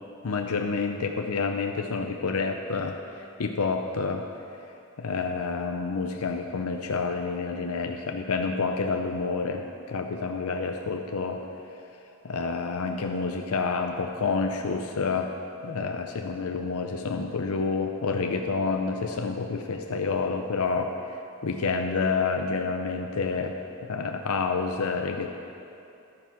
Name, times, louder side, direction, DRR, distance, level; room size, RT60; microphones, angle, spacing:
voice 1, 0.2-4.2 5.0-11.4 12.2-15.3 15.6-23.6 23.8-25.3, left 4 dB, 80° left, 4 dB, 0.6 m, -29 dB
11.5 x 9.2 x 5.9 m, 2.7 s
head